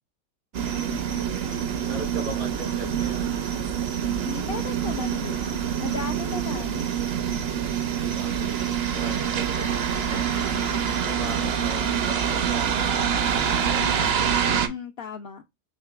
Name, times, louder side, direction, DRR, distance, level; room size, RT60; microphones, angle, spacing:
sound 1, 0.5-14.7, right 8 dB, 60° right, 0.7 m, -26 dB
voice 1, 0.9-1.3 4.2-6.9 13.5-15.4, left 7 dB, 65° left, 0.6 m, -37 dB
voice 2, 1.8-3.3 7.8-8.6 8.9-10.5 11.0-14.0, right 2 dB, 85° right, 2.7 m, -38 dB
6.5 x 3.2 x 2.3 m
omnidirectional pair, 1.5 m